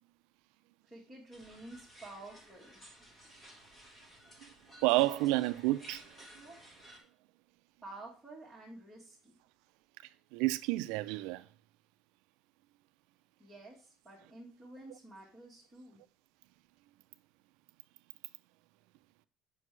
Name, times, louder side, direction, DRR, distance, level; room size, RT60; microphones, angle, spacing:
voice 1, 0.9-2.8 7.8-9.4 13.4-16.0, right 2 dB, 5° right, 1.4 m, -51 dB
sound 1, 1.3-7.0, right 1 dB, 15° left, 1.4 m, -55 dB
voice 2, 4.8-6.0 10.3-11.5, right 18 dB, 75° right, 0.4 m, -29 dB
7.4 x 5.7 x 3.2 m
cardioid pair, 175°, 0 cm